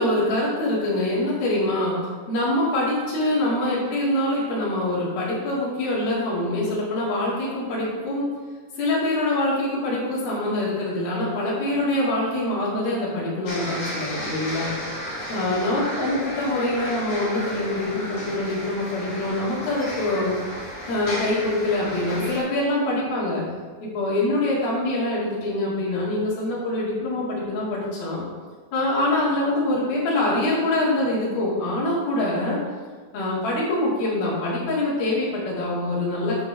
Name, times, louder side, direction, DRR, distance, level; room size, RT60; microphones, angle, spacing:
voice 1, 0.0-8.3 8.8-14.7 15.3-20.4 20.9-23.4 23.8-28.2 28.7-32.6 33.1-36.4, left 1 dB, 85° left, -7 dB, 4.2 m, -24 dB
sound 1, 13.5-22.4, left 1 dB, 60° left, 3.6 m, -33 dB
12.0 x 6.5 x 3.5 m, 1.5 s
omnidirectional pair, 4.2 m